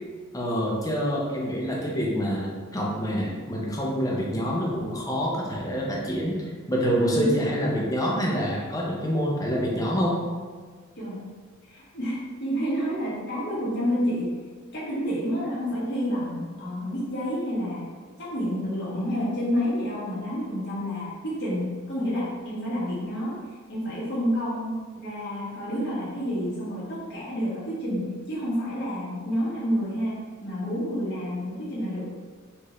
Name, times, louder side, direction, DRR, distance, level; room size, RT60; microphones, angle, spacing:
voice 1, 0.3-6.4 6.7-10.3, equal, 15° left, -3 dB, 0.6 m, -26 dB
voice 2, 6.9-7.5 11.0-11.3 11.6-14.3 14.7-17.9 18.2-23.4 23.7-32.0, equal, 55° left, -8 dB, 1.5 m, -29 dB
4.5 x 2.6 x 3.1 m, 1.5 s
head